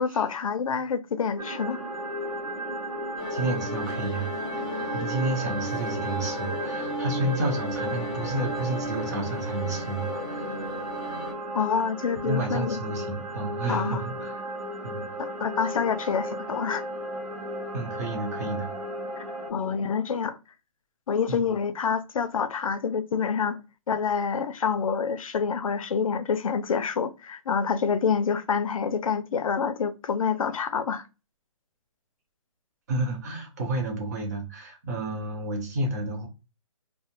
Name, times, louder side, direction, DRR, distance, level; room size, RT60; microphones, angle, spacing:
voice 1, 0.0-1.8 11.5-12.8 13.7-14.0 15.2-16.9 19.2-19.3 19.5-20.4 21.1-23.6 23.9-31.1, left 6 dB, 75° left, 0.5 m, -27 dB
sound 1, 1.4-19.5, right 1 dB, 90° right, 1.0 m, -35 dB
sound 2, 3.2-11.3, left 1 dB, 15° left, 0.4 m, -35 dB
voice 2, 3.3-4.3 4.6-4.7 4.9-10.5 12.2-14.4 14.8-15.1 17.7-18.7 21.3-21.5 32.9-36.3, right 2 dB, 30° right, 0.7 m, -31 dB
2.4 x 2.0 x 2.8 m
hypercardioid pair, 170°, 18 cm